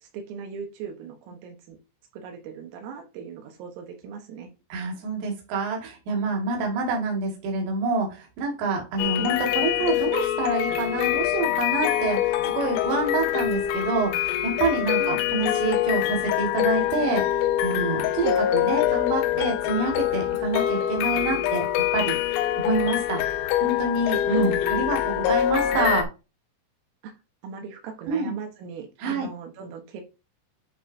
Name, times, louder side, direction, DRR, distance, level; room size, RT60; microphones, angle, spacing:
voice 1, 0.0-1.8 2.1-4.5 9.2-9.4 15.0-15.2 18.2-18.4 24.3-24.6 27.0-27.1 27.4-30.0, right 6 dB, 85° right, 3 dB, 3.9 m, -38 dB
voice 2, 4.7-17.2 17.6-23.2 23.6-26.1 28.1-28.3 29.0-29.3, right 3 dB, 60° right, 0 dB, 3.9 m, -27 dB
sound 1, 9.0-26.0, left 11 dB, 90° left, 3.4 m, -25 dB
10.5 x 4.9 x 2.7 m, 0.29 s
omnidirectional pair, 5.8 m